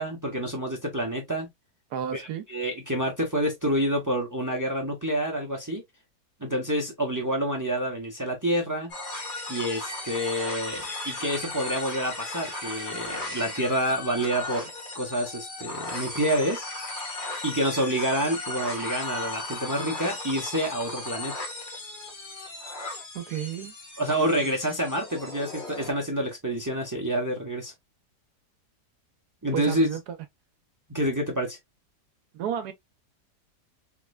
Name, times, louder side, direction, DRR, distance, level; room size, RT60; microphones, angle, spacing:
voice 1, 0.0-1.5 2.1-5.8 6.4-8.9 9.5-14.7 14.9-16.6 17.4-21.3 24.0-27.7 29.4-29.9 30.9-31.6, right 1 dB, 30° right, 0.3 m, -28 dB
voice 2, 1.9-2.4 23.1-23.7 24.1-24.5 29.5-30.2 32.3-32.7, right 9 dB, 75° right, 1.1 m, -32 dB
sound 1, 8.9-25.9, left 2 dB, 35° left, 1.0 m, -36 dB
3.6 x 3.1 x 2.2 m
omnidirectional pair, 1.8 m